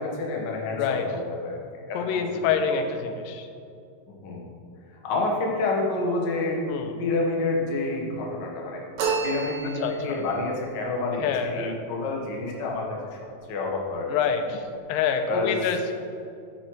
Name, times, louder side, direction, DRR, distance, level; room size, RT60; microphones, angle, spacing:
voice 1, 0.0-2.8 4.1-4.5 5.0-6.6 7.0-8.8 9.2-13.2 13.5-14.5 15.3-15.7, left 3 dB, 65° left, -1 dB, 1.1 m, -29 dB
voice 2, 0.7-1.0 1.9-3.5 6.7-6.9 9.8-10.2 11.2-11.8 14.1-14.6 14.9-15.9, left 6 dB, 85° left, 6 dB, 2.4 m, -26 dB
sound 1, 9.0-10.2, right 5 dB, 65° right, 2.1 m, -29 dB
8.9 x 7.6 x 4.7 m, 2.4 s
omnidirectional pair, 4.1 m